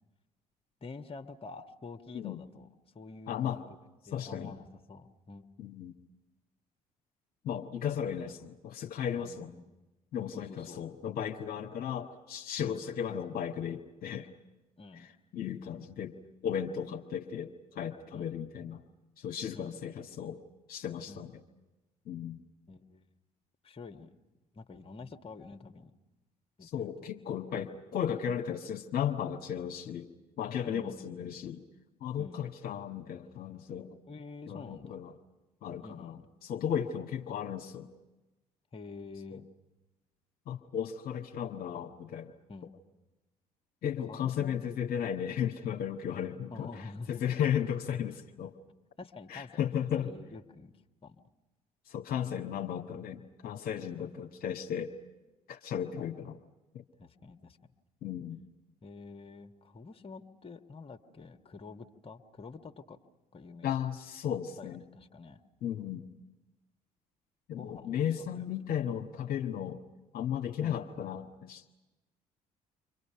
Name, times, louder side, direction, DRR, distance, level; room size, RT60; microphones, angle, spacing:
voice 1, 0.8-2.7 2.9-3.6 4.1-5.5 8.2-8.3 9.2-9.6 10.3-10.8 12.6-12.8 14.8-15.1 18.1-18.3 19.5-19.8 21.1-21.3 22.7-23.0 23.6-24.1 24.5-25.9 26.6-26.9 30.6-31.2 32.2-32.4 34.1-35.0 35.8-36.2 38.7-39.4 42.5-42.7 44.1-44.6 46.5-47.2 49.0-49.7 50.0-50.7 51.0-51.2 53.9-54.2 57.0-57.6 58.8-63.0 63.3-63.8 64.6-65.4 67.5-68.1 68.3-68.4 70.6-70.8, left 4 dB, 30° left, 6 dB, 1.4 m, -47 dB
voice 2, 3.3-3.6 4.1-4.5 5.6-5.9 7.4-9.5 10.1-14.3 15.0-16.2 16.4-18.8 19.2-20.4 20.7-21.3 22.1-22.4 26.6-30.1 30.4-31.6 32.0-34.0 34.5-35.1 35.6-37.9 39.3-39.4 40.5-42.3 43.8-48.5 49.3-50.1 51.9-54.9 55.5-56.4 56.7-56.8 58.0-58.4 63.6-64.8 65.6-66.1 67.5-69.8 70.1-71.6, left 9 dB, 50° left, 3 dB, 1.3 m, -35 dB
30.0 x 25.0 x 5.7 m, 1.1 s
figure-of-eight pair, 50°, 19 cm